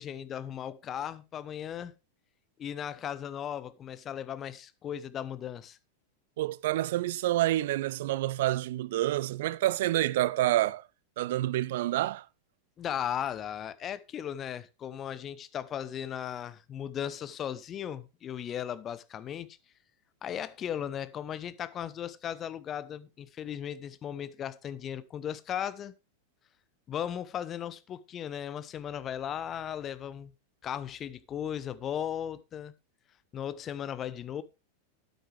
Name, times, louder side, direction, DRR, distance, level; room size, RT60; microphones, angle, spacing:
voice 1, 0.0-1.9 2.6-5.8 12.8-19.6 20.2-25.9 26.9-30.3 30.6-32.7 33.3-34.4, left 9 dB, 25° left, 0.9 m, -36 dB
voice 2, 6.4-10.9 11.2-12.3, right 15 dB, 55° right, 0.5 m, -28 dB
12.5 x 9.2 x 3.4 m
figure-of-eight pair, 90°, 0 cm